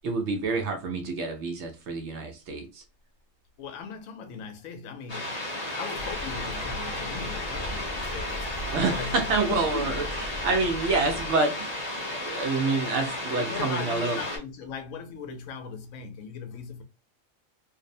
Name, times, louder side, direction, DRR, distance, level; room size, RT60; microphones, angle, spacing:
voice 1, 0.0-2.8 8.7-10.0 10.4-11.7 12.1-14.2, right 3 dB, 65° right, 0.8 m, -27 dB
voice 2, 3.6-8.5 8.9-9.2 9.5-10.1 10.7-10.8 13.3-16.8, left 5 dB, 85° left, 1.0 m, -38 dB
sound 1, 5.1-14.4, left 1 dB, 35° left, 0.8 m, -34 dB
Bird, 5.9-11.4, left 1 dB, 65° left, 0.5 m, -39 dB
2.6 x 2.0 x 2.5 m
omnidirectional pair, 1.4 m